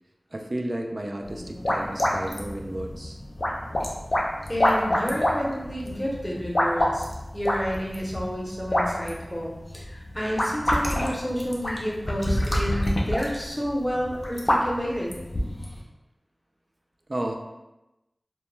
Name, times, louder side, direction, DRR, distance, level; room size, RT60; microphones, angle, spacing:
voice 1, 0.3-3.2 17.1-17.3, right 1 dB, 50° right, 2 dB, 0.3 m, -32 dB
sound 1, 1.2-15.8, left 1 dB, 55° left, 0.4 m, -27 dB
voice 2, 4.5-7.1 7.3-15.2, equal, 10° left, -4 dB, 0.7 m, -30 dB
2.1 x 2.1 x 3.0 m, 0.99 s
wide cardioid pair, 55°, 0 cm